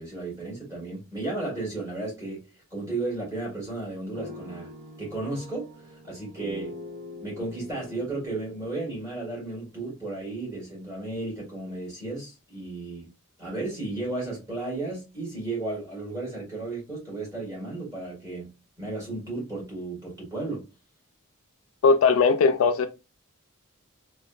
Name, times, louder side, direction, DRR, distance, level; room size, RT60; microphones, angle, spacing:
voice 1, 0.0-4.7 5.0-6.8 7.2-13.1 13.4-18.5 18.8-20.7, right 2 dB, 15° right, 1.7 m, -34 dB
sound 1, 4.2-10.2, left 2 dB, 50° right, 0.6 m, -44 dB
voice 2, 21.8-22.9, left 4 dB, 70° left, 0.3 m, -19 dB
3.2 x 2.2 x 2.3 m
head